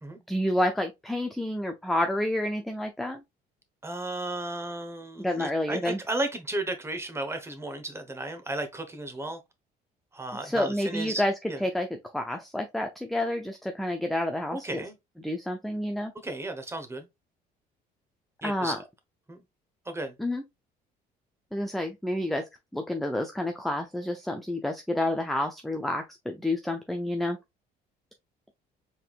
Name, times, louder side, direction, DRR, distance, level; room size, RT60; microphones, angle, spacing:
voice 1, 0.3-3.2 5.2-6.0 10.4-11.3 11.6-14.8 15.2-16.1 18.4-18.8 20.2-20.4 21.5-27.4, left 1 dB, ahead, 0.6 m, -29 dB
voice 2, 3.8-9.4 10.1-11.2 11.5-11.6 14.5-15.0 16.2-17.1 18.4-18.7 19.3-19.4 19.8-20.1, right 2 dB, 15° right, 1.1 m, -34 dB
4.4 x 3.8 x 2.4 m
cardioid pair, 110°, 17 cm